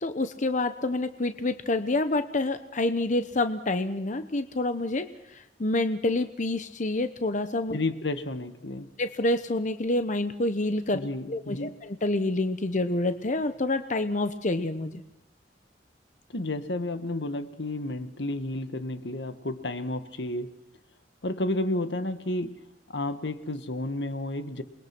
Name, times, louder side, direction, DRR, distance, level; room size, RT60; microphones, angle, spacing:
voice 1, 0.0-7.8 9.0-15.0, left 2 dB, 45° left, 9 dB, 1.0 m, -28 dB
voice 2, 7.7-8.9 10.9-11.7 16.3-20.5 21.2-22.6 22.9-24.6, left 1 dB, 80° left, 10 dB, 1.6 m, -31 dB
28.5 x 21.5 x 6.1 m, 0.86 s
head